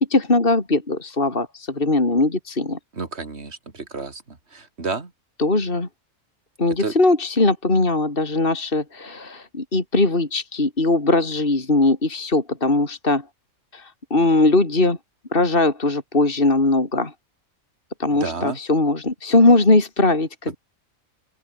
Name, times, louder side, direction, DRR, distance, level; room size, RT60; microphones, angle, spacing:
voice 1, 0.0-2.8 5.4-5.9 6.6-13.3 13.7-15.0 15.3-17.1 18.0-20.6, left 2 dB, 40° left, 3.5 m, -20 dB
voice 2, 2.9-5.1 6.8-6.9 18.1-18.6, right 3 dB, 50° right, 3.1 m, -31 dB
open air
omnidirectional pair, 1.5 m